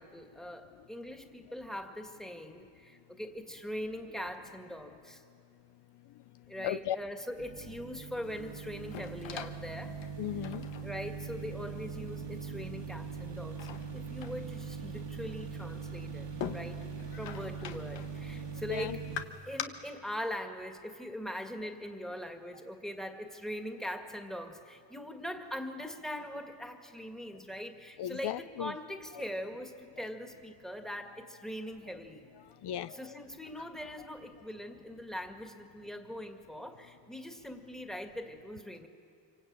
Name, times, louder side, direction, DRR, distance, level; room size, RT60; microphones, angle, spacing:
voice 1, 0.0-5.2 6.5-10.0 10.8-16.8 17.1-19.0 19.5-32.2 32.9-38.9, equal, ahead, 4 dB, 2.1 m, -41 dB
voice 2, 6.6-7.0 10.2-10.7 17.2-17.4 18.7-19.0 28.0-28.8 29.1-29.3 30.0-30.1 32.4-33.2 33.6-33.7 34.0-34.1, left 12 dB, 65° left, 13 dB, 0.6 m, -37 dB
sound 1, 7.4-19.2, right 5 dB, 80° right, 2.2 m, -41 dB
sound 2, 8.2-19.6, left 8 dB, 85° left, 1.4 m, -46 dB
26.5 x 24.5 x 8.9 m, 2.4 s
cardioid pair, 120°, 43 cm